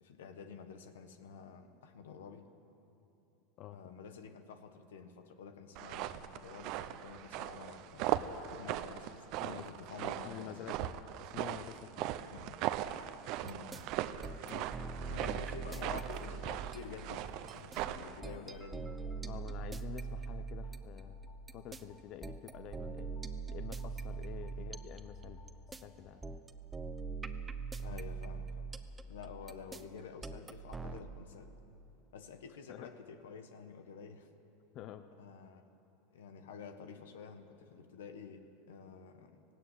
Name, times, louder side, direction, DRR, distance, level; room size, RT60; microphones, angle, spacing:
voice 1, 0.0-2.5 3.7-8.2 8.5-10.7 12.2-12.6 13.4-13.9 15.1-19.0 24.6-24.7 27.8-28.7 29.1-31.5 32.1-34.3 35.2-35.7 36.1-39.4, left 6 dB, 85° left, 8 dB, 1.5 m, -50 dB
voice 2, 3.6-3.9 9.4-9.7 10.2-12.1 14.4-14.7 19.2-21.2 21.5-23.1 23.5-25.4 25.8-26.3 27.8-28.0 32.7-32.9 34.7-35.0, left 11 dB, 45° left, 10 dB, 0.8 m, -48 dB
sound 1, 5.7-18.2, right 13 dB, 55° right, 0.8 m, -39 dB
sound 2, 13.5-13.8 14.2-17.0 17.5-21.0 21.5-25.8 26.2-31.0, right 4 dB, 15° right, 0.9 m, -42 dB
sound 3, 16.9-26.1, left 4 dB, 30° left, 5.7 m, -62 dB
16.5 x 16.5 x 9.9 m, 2.9 s
supercardioid pair, 115°, 0 cm